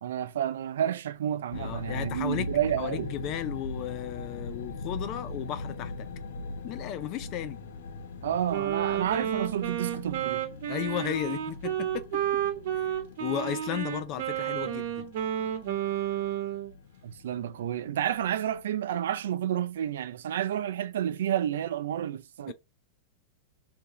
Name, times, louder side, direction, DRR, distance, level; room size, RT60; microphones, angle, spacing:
voice 1, 0.0-3.1 8.2-10.5 17.0-22.5, right 10 dB, 85° right, 0.3 m, -30 dB
sound 1, 1.5-18.6, left 3 dB, 80° left, 0.7 m, -41 dB
voice 2, 1.5-2.5 2.8-6.1 6.6-7.6 10.7-12.2 13.2-15.1 22.5-22.6, left 11 dB, 45° left, 0.4 m, -34 dB
Wind instrument woodwind instrument, 8.5-16.7, right 10 dB, 70° right, 0.9 m, -31 dB
2.8 x 2.6 x 3.5 m
supercardioid pair, 130°, 0 cm